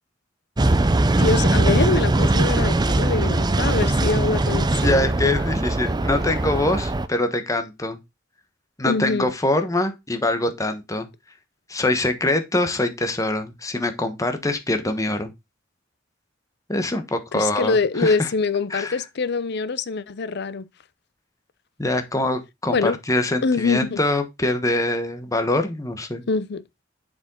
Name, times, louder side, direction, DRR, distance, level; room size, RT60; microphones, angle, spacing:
sound 1, 0.6-7.1, right 2 dB, 20° right, 0.5 m, -20 dB
voice 1, 1.2-5.1 8.9-9.3 17.3-20.7 22.7-23.0 23.4-24.0 26.3-26.6, left 4 dB, 60° left, 0.6 m, -24 dB
voice 2, 4.8-8.0 8.8-11.1 11.7-15.3 16.7-18.3 18.7-19.0 21.8-26.2, left 2 dB, 20° left, 1.1 m, -24 dB
7.0 x 5.2 x 3.7 m
head